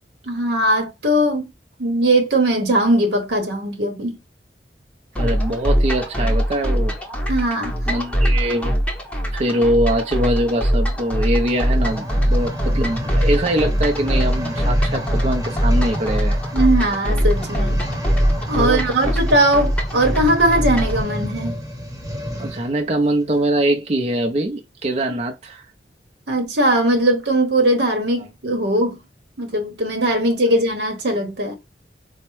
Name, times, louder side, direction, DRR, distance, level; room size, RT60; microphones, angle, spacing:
voice 1, 0.3-1.5 1.8-4.2 7.3-7.7 16.5-17.8 18.5-21.5 26.3-29.0 29.4-31.5, right 1 dB, 75° right, 0.9 m, -19 dB
sound 1, 5.2-21.0, equal, 5° left, 0.8 m, -21 dB
voice 2, 5.2-6.9 7.9-8.8 9.3-16.4 18.6-19.2 22.4-25.6, right 1 dB, 40° right, 0.5 m, -22 dB
sound 2, 11.5-22.7 23.4-23.5, equal, 20° right, 0.9 m, -30 dB
4.4 x 2.1 x 3.0 m
head